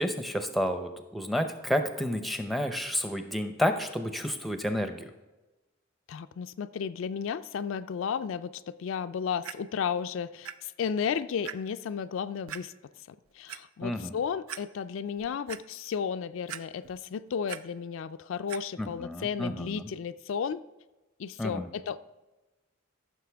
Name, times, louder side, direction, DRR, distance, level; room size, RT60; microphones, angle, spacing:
voice 1, 0.0-5.1 13.8-14.2 18.8-19.9 21.4-21.7, equal, ahead, 7 dB, 0.6 m, -30 dB
voice 2, 6.1-12.7 13.1-20.6 21.2-22.0, left 7 dB, 70° left, 11 dB, 0.3 m, -33 dB
Clock, 9.4-9.5 10.4-10.5 11.0-11.1 11.4-11.5 12.5-12.6 13.3-13.6 14.1-14.2 14.5-14.6 15.1-15.6 16.5-17.0 17.3-17.6 18.5-18.6 19.3-19.4, right 8 dB, 90° right, 0.5 m, -39 dB
14.0 x 6.5 x 3.4 m, 1.1 s
head